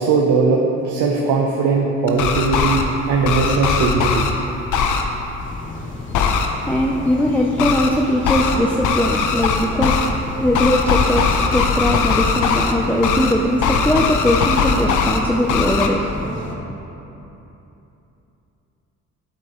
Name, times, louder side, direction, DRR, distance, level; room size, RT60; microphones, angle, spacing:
voice 1, 0.0-4.2, right 4 dB, 85° right, 0 dB, 0.7 m, -19 dB
sound 1, 2.1-2.8 3.2-4.3 4.7-5.0 6.1-6.5 7.6-7.9 8.2-8.6 8.8-10.1 10.5-12.7 13.0-13.3 13.6-15.2 15.5-15.9, left 6 dB, 80° left, 0.7 m, -19 dB
sound 2, 5.4-16.5, left 2 dB, 40° left, 1.1 m, -33 dB
voice 2, 5.6-16.3, equal, 5° left, -1 dB, 0.5 m, -20 dB
9.5 x 8.0 x 3.0 m, 3.0 s
cardioid pair, 90°, 30 cm